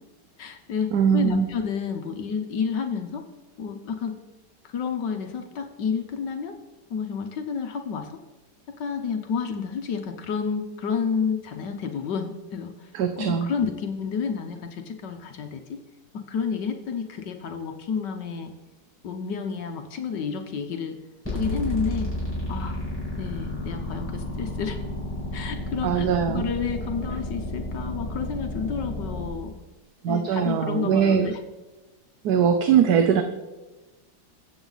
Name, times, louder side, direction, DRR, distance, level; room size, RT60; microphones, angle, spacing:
voice 1, 0.4-3.2 3.6-4.2 4.6-6.6 6.9-8.2 8.8-12.9 13.2-15.8 16.1-18.5 19.0-20.9 21.3-22.1 22.5-22.8 23.2-24.8 25.3-29.6 30.1-31.4, left 6 dB, 70° left, 5 dB, 1.5 m, -30 dB
voice 2, 0.9-1.5 12.9-13.5 25.8-26.5 27.1-27.2 30.0-31.4 32.2-33.2, right 7 dB, 65° right, 7 dB, 1.2 m, -21 dB
sound 1, 21.2-29.3, left 1 dB, 5° left, 4.8 m, -31 dB
21.5 x 8.1 x 4.0 m, 1.1 s
omnidirectional pair, 2.1 m